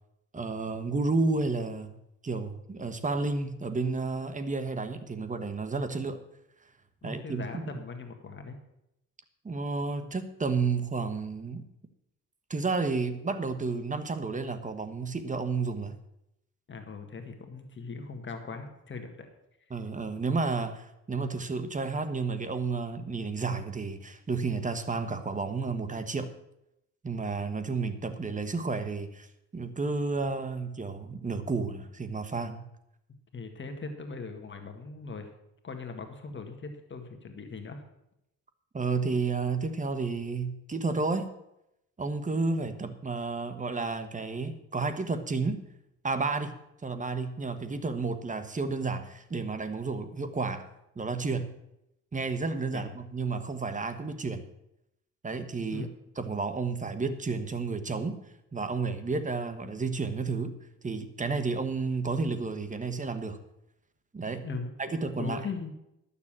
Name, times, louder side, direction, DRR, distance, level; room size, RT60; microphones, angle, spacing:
voice 1, 0.3-1.9 2.2-6.2 7.0-7.8 9.4-11.6 12.5-16.0 19.7-26.3 27.0-29.3 29.5-32.6 38.7-41.3 42.0-45.6 46.0-46.6 46.8-50.7 51.0-51.5 52.1-54.4 55.2-55.9 56.2-58.2 58.5-60.5 60.8-63.4 64.1-64.4 64.8-65.4, right 4 dB, 25° right, 10 dB, 1.3 m, -31 dB
voice 2, 7.0-8.6 16.7-19.3 33.3-35.3 35.6-37.8 52.7-52.9 55.7-55.9 64.4-65.7, left 4 dB, 40° left, 5 dB, 1.7 m, -39 dB
11.5 x 7.1 x 7.4 m, 0.84 s
cardioid pair, 90°, 30 cm